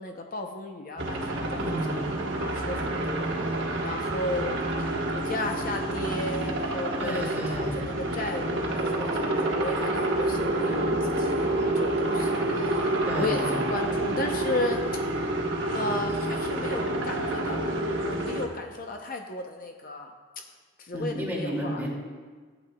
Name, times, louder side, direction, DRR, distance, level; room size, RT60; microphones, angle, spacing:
voice 1, 0.0-1.7 2.2-3.3 3.8-4.6 5.1-13.4 13.7-15.0 15.7-20.1 20.8-21.8, left 2 dB, 50° left, 3 dB, 0.6 m, -34 dB
sound 1, 1.0-18.5, right 1 dB, 75° right, 1.2 m, -28 dB
voice 2, 1.5-2.1 7.0-7.8 13.0-13.7 20.9-21.9, equal, 10° right, -4 dB, 2.3 m, -32 dB
14.5 x 9.1 x 2.3 m, 1.5 s
head